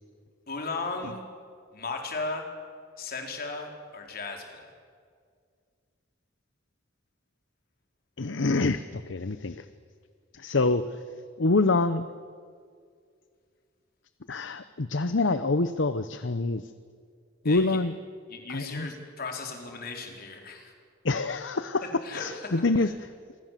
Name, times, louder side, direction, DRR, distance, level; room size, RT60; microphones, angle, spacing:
voice 1, 0.5-1.2 1.7-2.5 3.0-4.6 17.4-17.8 18.3-20.7 22.0-22.6, left 3 dB, 50° left, 3 dB, 4.2 m, -36 dB
voice 2, 8.2-9.7 10.3-11.0 11.4-12.1 14.3-16.7 17.4-17.9 18.5-18.9 21.0-23.1, left 3 dB, 65° left, 12 dB, 0.8 m, -26 dB
27.5 x 24.0 x 7.5 m, 2.1 s
head